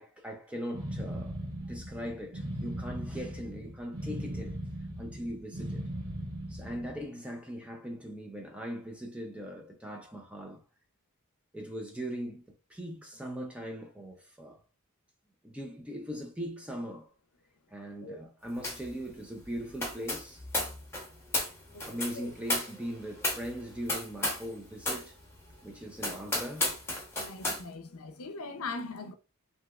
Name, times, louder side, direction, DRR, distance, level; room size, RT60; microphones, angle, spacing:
voice 1, 0.0-4.6 5.0-5.8 6.5-10.6 11.5-14.6 15.4-17.1 17.7-20.4 21.9-25.2 25.6-26.7, equal, 5° right, 0.4 m, -40 dB
sound 1, 0.7-7.0, right 1 dB, 70° right, 1.1 m, -38 dB
sound 2, 18.6-18.9 19.2-24.5 24.8-25.1 25.5-25.6 26.0-27.6, left 2 dB, 10° left, 0.9 m, -33 dB
voice 2, 27.2-29.1, left 3 dB, 80° left, 0.6 m, -40 dB
3.2 x 2.8 x 2.3 m
head